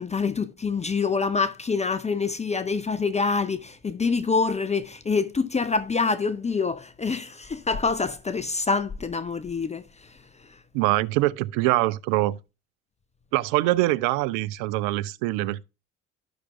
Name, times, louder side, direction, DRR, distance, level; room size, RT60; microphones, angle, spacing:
voice 1, 0.0-9.8, left 4 dB, 20° left, 0.6 m, -26 dB
voice 2, 10.7-12.4 13.3-15.6, right 17 dB, 60° right, 0.5 m, -24 dB
12.0 x 5.9 x 2.4 m
figure-of-eight pair, 50°, 37 cm